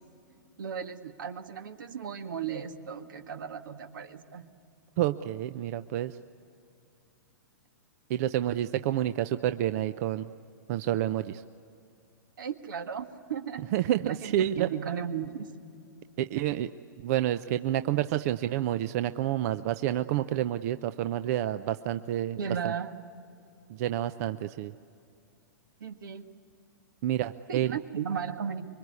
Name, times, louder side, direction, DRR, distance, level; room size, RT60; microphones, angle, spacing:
voice 1, 0.6-4.5 12.4-13.7 14.0-15.5 22.4-23.0 25.8-26.2 27.5-28.7, right 7 dB, 80° right, 7 dB, 1.8 m, -35 dB
voice 2, 5.0-6.2 8.1-10.3 10.7-11.4 13.7-14.7 16.2-16.7 17.0-22.7 23.7-24.7 27.0-27.8, right 12 dB, 50° right, 11 dB, 0.6 m, -29 dB
25.5 x 23.0 x 9.7 m, 2.5 s
hypercardioid pair, 135°, 11 cm